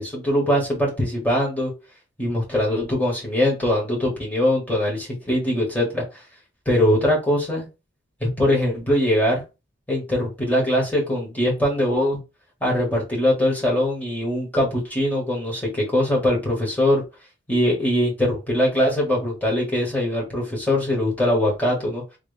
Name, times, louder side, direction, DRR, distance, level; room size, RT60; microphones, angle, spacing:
voice 1, 0.0-1.7 2.2-6.0 6.7-7.7 8.2-9.4 9.9-12.2 12.6-17.0 17.5-22.0, left 1 dB, 10° left, -4 dB, 1.9 m, -22 dB
3.7 x 3.1 x 3.5 m, 0.27 s
head